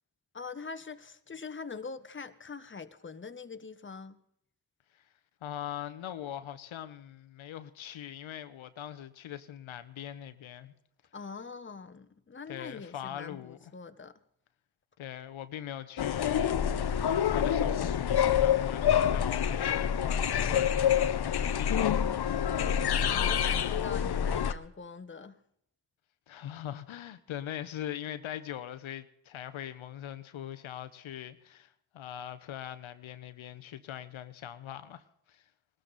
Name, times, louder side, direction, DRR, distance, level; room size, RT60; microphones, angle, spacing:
voice 1, 0.3-4.2 11.1-14.2 22.6-25.4, left 4 dB, 25° left, 1.1 m, -43 dB
voice 2, 5.4-10.7 12.5-13.6 15.0-16.6 17.0-22.0 26.3-35.4, left 11 dB, 85° left, 1.0 m, -41 dB
sound 1, 16.0-24.5, left 9 dB, 55° left, 0.8 m, -27 dB
19.0 x 13.0 x 4.0 m
cardioid pair, 60°, 47 cm